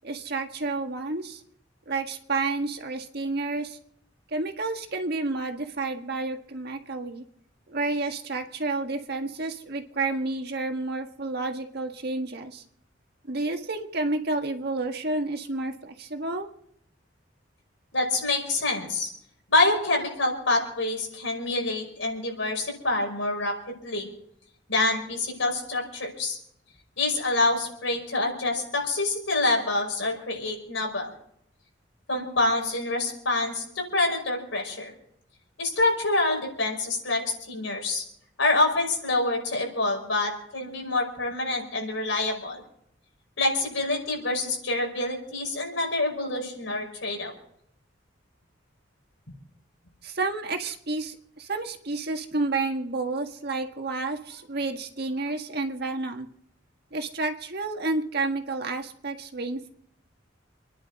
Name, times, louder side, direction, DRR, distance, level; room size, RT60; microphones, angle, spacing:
voice 1, 0.0-1.4 1.9-3.8 4.3-7.2 7.7-12.6 13.2-16.5 50.0-56.3 56.9-59.7, right 3 dB, 55° right, 5 dB, 1.6 m, -30 dB
voice 2, 17.9-19.1 19.5-24.1 24.7-26.4 27.0-31.1 32.1-34.9 35.6-37.2 37.5-38.0 38.4-42.6 43.4-47.3, left 2 dB, 85° left, 0 dB, 5.5 m, -26 dB
28.5 x 10.5 x 4.1 m, 0.70 s
head